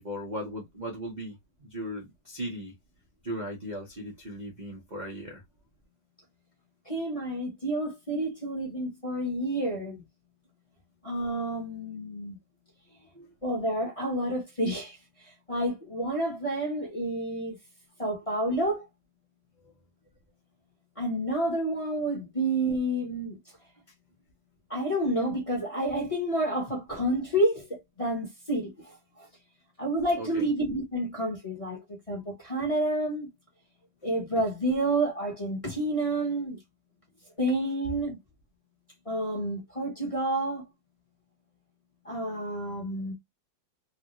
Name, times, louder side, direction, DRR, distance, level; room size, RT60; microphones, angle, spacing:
voice 1, 0.0-2.7 3.2-5.4 13.1-13.3 30.2-30.5, equal, 75° right, 0.4 m, -37 dB
voice 2, 6.9-10.0 11.0-12.4 13.4-15.0 15.5-17.6 18.0-18.8 21.0-23.4 24.7-29.3 29.8-31.8 32.1-33.3 34.0-36.6 37.4-38.2 39.1-40.6 42.0-43.1, right 1 dB, 25° left, 0.7 m, -29 dB
3.3 x 2.4 x 3.0 m
omnidirectional pair, 2.3 m